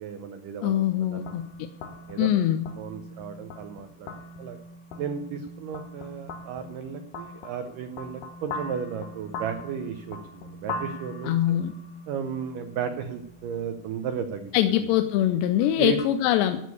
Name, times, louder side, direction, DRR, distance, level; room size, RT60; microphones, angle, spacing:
voice 1, 0.0-1.4 2.1-2.3 2.8-4.6 5.0-11.6 12.1-14.9 15.8-16.0, right 7 dB, 90° right, 8 dB, 1.9 m, -34 dB
voice 2, 0.6-1.4 2.2-2.6 11.2-11.7 14.5-16.6, left 12 dB, 90° left, 8 dB, 2.9 m, -23 dB
sound 1, 1.2-16.1, left 2 dB, 65° left, 2.5 m, -41 dB
14.0 x 6.4 x 8.4 m, 0.81 s
omnidirectional pair, 4.9 m